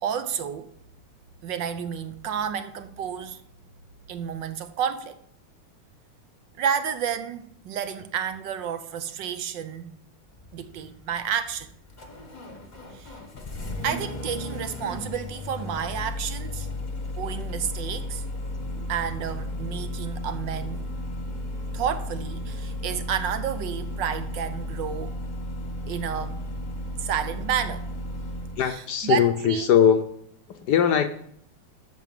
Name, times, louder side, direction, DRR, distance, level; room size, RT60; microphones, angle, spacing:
voice 1, 0.0-0.7 1.4-3.4 4.1-5.2 6.6-9.9 10.5-11.7 12.9-13.1 13.8-16.7 17.2-18.2 18.7-20.9 21.7-25.1 25.9-26.4 27.0-27.9 28.7-29.7, right 8 dB, 70° right, 1.3 m, -30 dB
Engine starting, 10.3-28.7, left 1 dB, 30° left, 1.0 m, -34 dB
voice 2, 28.6-30.1 30.5-31.1, left 8 dB, 65° left, 1.1 m, -21 dB
12.0 x 4.5 x 7.5 m
omnidirectional pair, 2.2 m